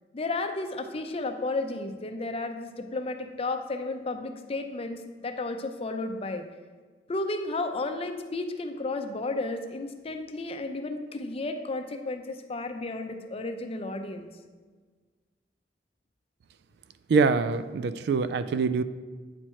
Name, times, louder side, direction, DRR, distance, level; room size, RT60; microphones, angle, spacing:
voice 1, 0.1-6.4 7.1-14.3, left 2 dB, 35° left, 6 dB, 0.5 m, -33 dB
voice 2, 17.1-18.8, right 4 dB, 65° right, 14 dB, 0.3 m, -24 dB
8.8 x 4.6 x 4.3 m, 1.4 s
head